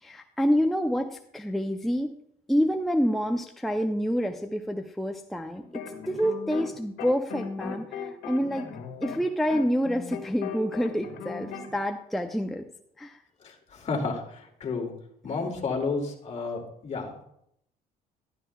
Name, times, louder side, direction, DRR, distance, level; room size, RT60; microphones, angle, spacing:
voice 1, 0.0-2.1 2.5-8.7 9.0-12.7 13.0-13.2 15.4-15.5, equal, ahead, 5 dB, 0.5 m, -28 dB
sound 1, 5.6-6.7 7.0-11.7, left 6 dB, 80° left, 1.7 m, -37 dB
voice 2, 13.4-14.9 15.2-17.2, left 4 dB, 40° left, 1 dB, 2.1 m, -31 dB
12.0 x 11.5 x 2.2 m, 0.72 s
cardioid pair, 110°, 17 cm